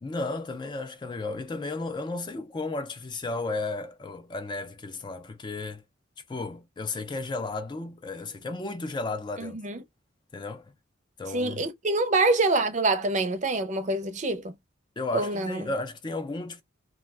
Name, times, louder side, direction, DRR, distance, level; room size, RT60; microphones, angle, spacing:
voice 1, 0.0-5.8 6.3-9.6 10.3-10.7 11.2-11.6 15.0-16.6, left 3 dB, 25° left, 0.3 m, -34 dB
voice 2, 9.4-9.8 11.3-14.5 15.1-15.7, right 2 dB, 40° right, 0.5 m, -26 dB
2.4 x 2.2 x 3.2 m
head